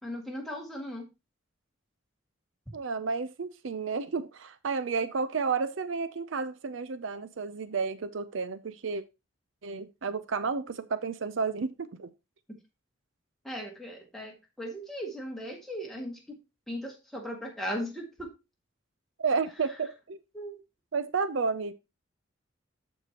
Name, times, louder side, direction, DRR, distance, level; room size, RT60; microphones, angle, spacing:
voice 1, 0.0-1.1 13.4-16.4 16.7-18.3 20.3-20.6, equal, ahead, 2.0 m, -37 dB
voice 2, 2.7-9.0 9.6-12.1 19.2-20.2 20.9-21.7, right 5 dB, 75° right, 0.6 m, -31 dB
13.5 x 4.7 x 2.9 m
head